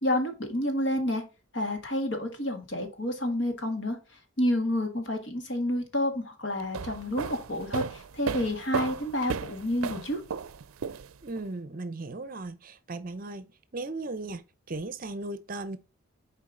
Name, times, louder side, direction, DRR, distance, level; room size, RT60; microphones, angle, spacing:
voice 1, 0.0-1.2 1.5-4.0 4.4-10.2, left 1 dB, 60° left, 1.8 m, -29 dB
sound 1, 6.6-11.4, right 6 dB, 90° right, 0.5 m, -35 dB
voice 2, 11.2-14.4 14.7-15.8, right 2 dB, 40° right, 0.6 m, -37 dB
7.4 x 4.5 x 3.8 m
head